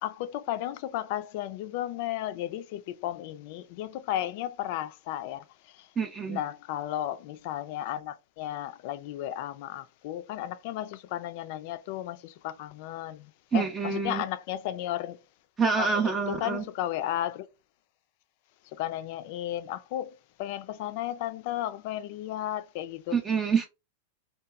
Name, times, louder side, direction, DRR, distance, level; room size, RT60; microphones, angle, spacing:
voice 1, 0.0-5.4 5.8-5.9 6.3-15.2 15.8-17.5 18.8-23.2, left 13 dB, 55° left, 0.3 m, -34 dB
voice 2, 6.0-6.4 13.5-14.2 15.6-16.7 23.1-23.6, right 5 dB, 20° right, 0.4 m, -27 dB
2.8 x 2.2 x 2.3 m
hypercardioid pair, 120°, 0 cm